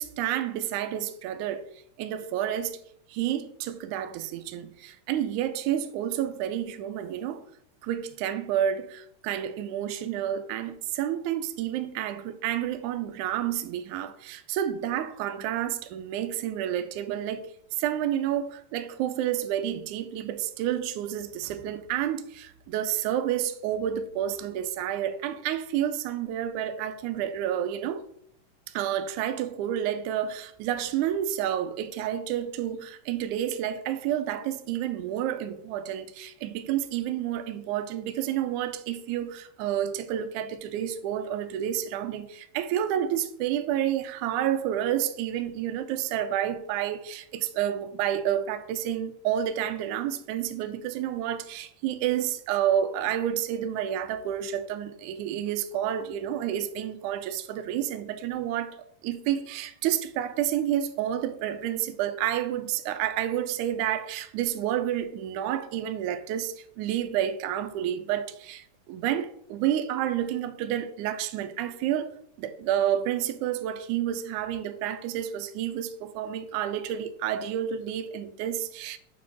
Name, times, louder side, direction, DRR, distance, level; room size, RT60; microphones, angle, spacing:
voice 1, 0.0-1.7 2.0-2.8 3.1-7.4 7.8-17.5 17.8-28.1 28.7-72.1 72.4-79.0, right 10 dB, 85° right, 1.7 m, -30 dB
6.7 x 3.8 x 5.1 m
omnidirectional pair, 4.1 m